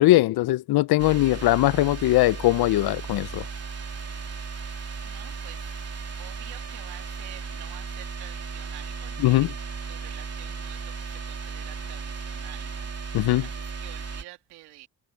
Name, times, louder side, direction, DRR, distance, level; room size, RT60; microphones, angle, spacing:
voice 1, 0.0-3.4 9.2-9.5 13.1-13.5, left 17 dB, 75° left, 0.7 m, -21 dB
sound 1, 1.0-14.2, right 5 dB, 40° right, 3.2 m, -36 dB
voice 2, 4.0-5.7 6.2-9.5 9.9-12.9 13.4-14.9, right 17 dB, 85° right, 2.8 m, -48 dB
hypercardioid pair, 45°, 38 cm